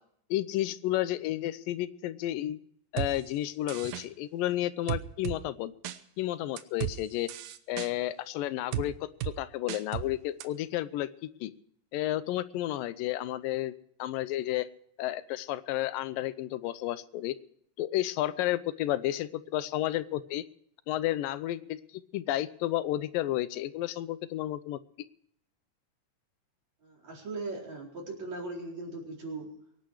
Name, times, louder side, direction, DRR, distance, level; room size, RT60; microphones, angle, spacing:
voice 1, 0.3-2.6 2.9-5.7 6.2-7.3 7.7-11.5 11.9-14.7 15.0-17.4 17.8-20.4 20.9-21.8 22.1-24.8, left 14 dB, 90° left, 15 dB, 2.4 m, -32 dB
sound 1, 3.0-3.1 3.7-4.0 4.9-5.4 5.8-6.0 6.6-7.0 7.3-7.9 8.7-8.9 9.2-9.3 9.7-10.1 10.4-10.5, right 11 dB, 80° right, 2.6 m, -34 dB
voice 2, 26.8-29.5, right 3 dB, 55° right, -1 dB, 5.6 m, -39 dB
23.5 x 10.5 x 4.7 m, 0.71 s
omnidirectional pair, 3.9 m